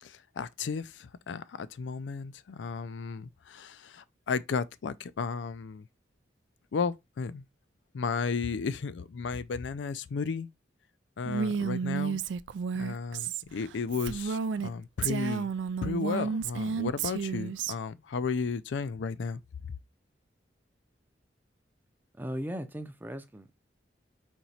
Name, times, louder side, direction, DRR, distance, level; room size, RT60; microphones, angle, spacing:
voice 1, 0.0-5.9 6.7-7.4 7.9-10.5 11.2-12.2 12.7-15.5 15.8-19.4, left 5 dB, 85° left, 0.4 m, -34 dB
Female speech woman speaking, 11.2-14.7 15.0-17.7, right 6 dB, 85° right, 0.3 m, -32 dB
voice 2, 22.2-23.7, equal, 10° right, 0.5 m, -38 dB
4.4 x 2.9 x 4.0 m
head